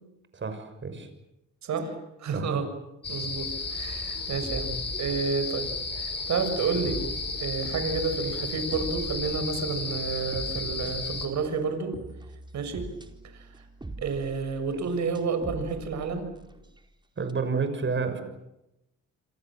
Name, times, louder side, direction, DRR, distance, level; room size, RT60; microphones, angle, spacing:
voice 1, 0.3-1.1 2.3-2.5 17.2-18.2, right 4 dB, 40° right, 9 dB, 6.3 m, -30 dB
voice 2, 1.6-2.7 3.1-7.0 7.4-12.0 12.5-12.9 13.3-13.5 14.0-16.3, right 5 dB, 65° right, 8 dB, 6.8 m, -30 dB
sound 1, 3.0-11.3, left 3 dB, 35° left, 6.1 m, -33 dB
sound 2, 3.7-6.0 6.6-16.9 17.3-17.4, right 2 dB, 15° right, 4.3 m, -43 dB
27.5 x 27.0 x 7.7 m, 0.89 s
cardioid pair, 90°, 30 cm